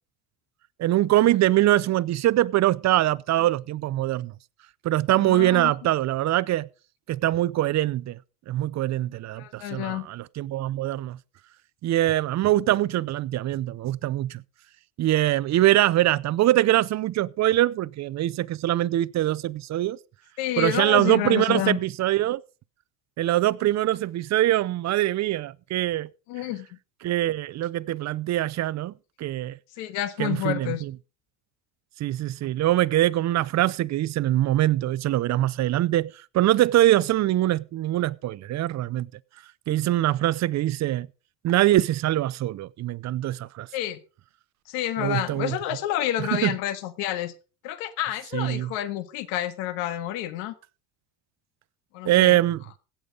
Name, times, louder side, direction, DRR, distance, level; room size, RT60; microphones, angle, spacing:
voice 1, 0.8-4.3 4.8-6.7 7.1-8.2 8.5-11.2 11.8-14.4 15.0-20.0 20.6-22.4 23.2-26.1 27.0-28.9 29.2-29.6 30.2-30.9 32.0-39.1 39.7-41.1 41.4-43.7 45.0-45.6 46.2-46.6 48.3-48.7 52.1-52.6, right 14 dB, 40° right, 0.5 m, -23 dB
voice 2, 5.2-5.7 9.4-10.1 20.4-21.8 26.3-26.7 29.8-30.8 43.7-44.0 44.7-47.3 47.6-50.5 51.9-52.4, left 13 dB, 80° left, 1.8 m, -29 dB
16.5 x 7.1 x 5.1 m
cardioid pair, 120°, 45 cm